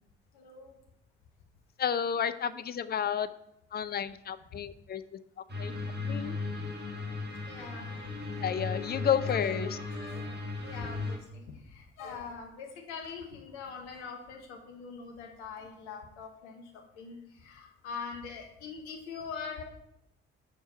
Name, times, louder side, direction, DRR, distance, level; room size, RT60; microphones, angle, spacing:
voice 1, 0.3-0.8 7.5-7.9 9.2-19.6, left 5 dB, 75° left, 2 dB, 1.2 m, -43 dB
voice 2, 1.8-3.3 3.7-5.2 5.6-5.7 6.1-6.4 8.4-9.8, left 8 dB, 30° left, 13 dB, 0.5 m, -31 dB
sound 1, 5.5-11.2, left 3 dB, 30° right, 1.8 m, -36 dB
7.3 x 4.5 x 5.0 m, 0.78 s
figure-of-eight pair, 40°, 35 cm